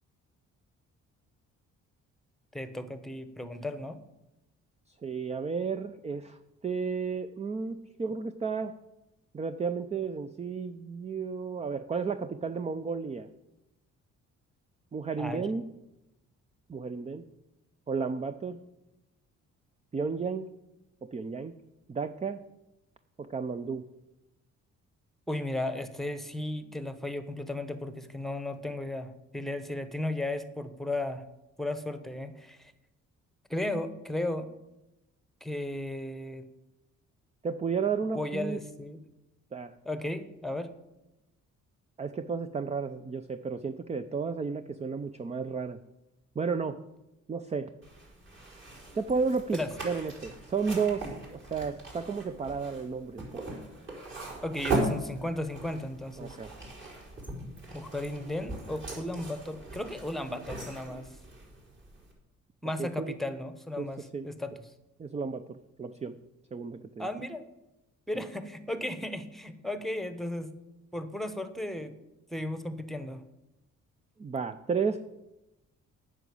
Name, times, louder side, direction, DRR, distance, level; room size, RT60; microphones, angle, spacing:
voice 1, 2.5-4.0 15.2-15.5 25.3-31.2 31.6-32.7 33.5-34.5 35.4-36.5 38.1-39.0 39.8-40.7 49.5-49.7 54.4-56.5 57.7-61.2 62.6-64.5 67.0-67.4 68.1-70.5 70.9-72.0 72.3-73.2, left 1 dB, ahead, 10 dB, 1.1 m, -35 dB
voice 2, 5.0-6.4 6.6-8.7 9.3-13.3 14.9-15.6 16.7-17.2 17.9-18.6 19.9-20.5 21.1-21.5 21.9-22.4 23.3-23.8 37.4-38.6 39.5-39.7 42.0-45.8 46.4-46.8 47.3-47.7 48.9-49.6 49.8-53.4 56.2-56.5 62.8-63.2 63.8-63.9 64.1-64.3 65.0-66.1 66.5-67.1 68.1-68.2 74.2-75.0, right 5 dB, 20° right, 10 dB, 0.5 m, -32 dB
sound 1, 47.8-62.1, right 2 dB, 40° right, 4.7 m, -39 dB
8.9 x 6.2 x 8.4 m, 0.95 s
cardioid pair, 90°, 30 cm